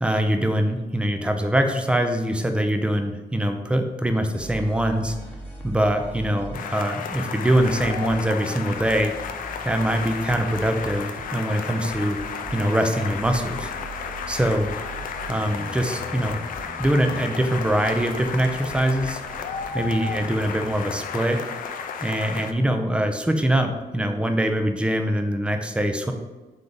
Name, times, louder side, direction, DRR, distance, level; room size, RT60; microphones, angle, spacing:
voice 1, 0.0-5.1 5.6-9.1 9.6-12.2 12.5-13.7 14.3-14.7 15.3-16.4 16.8-19.2 19.7-21.4 22.0-26.1, right 1 dB, 5° right, 5 dB, 0.5 m, -23 dB
sound 1, 4.4-21.8, right 1 dB, 10° left, 1.0 m, -41 dB
sound 2, 6.5-22.5, left 6 dB, 60° left, 0.5 m, -33 dB
3.9 x 3.2 x 3.8 m, 1.2 s
cardioid pair, 85°, 16 cm